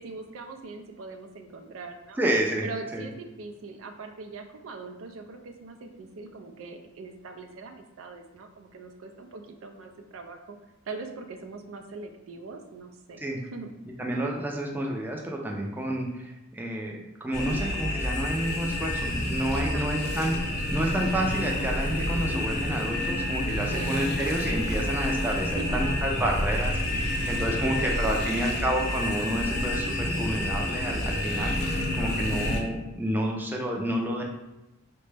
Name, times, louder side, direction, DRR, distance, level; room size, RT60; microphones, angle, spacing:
voice 1, 0.0-2.2 2.6-10.6 10.9-13.2 13.5-13.7 19.5-20.2 23.7-24.0 25.3-25.9 26.9-27.3 27.6-28.3 31.7-32.3, right 3 dB, 80° right, 5 dB, 0.4 m, -41 dB
voice 2, 2.2-2.6 2.9-3.1 13.2-13.4 14.0-20.4 20.7-34.2, right 1 dB, 10° right, -1 dB, 0.4 m, -30 dB
sound 1, 17.3-32.6, left 1 dB, 50° left, 0.6 m, -29 dB
3.9 x 2.2 x 3.2 m, 0.97 s
head